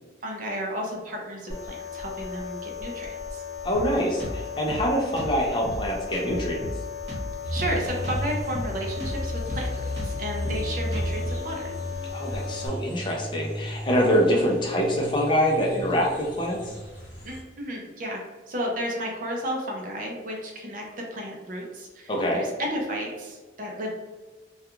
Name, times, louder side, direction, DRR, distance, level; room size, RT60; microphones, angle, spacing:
voice 1, 0.2-3.4 7.5-11.7 17.2-18.2 18.5-20.8 21.1-23.9, equal, 45° right, -1 dB, 0.5 m, -33 dB
sound 1, 1.5-12.7, left 7 dB, 80° left, 0.6 m, -37 dB
voice 2, 3.6-6.6 12.1-16.6 22.1-22.4, equal, 25° left, -2 dB, 0.4 m, -25 dB
Drum kit, 3.7-11.4, left 1 dB, 70° right, 1.0 m, -35 dB
sound 2, 7.4-17.4, equal, 45° left, 0.9 m, -34 dB
2.3 x 2.2 x 2.9 m, 1.3 s
head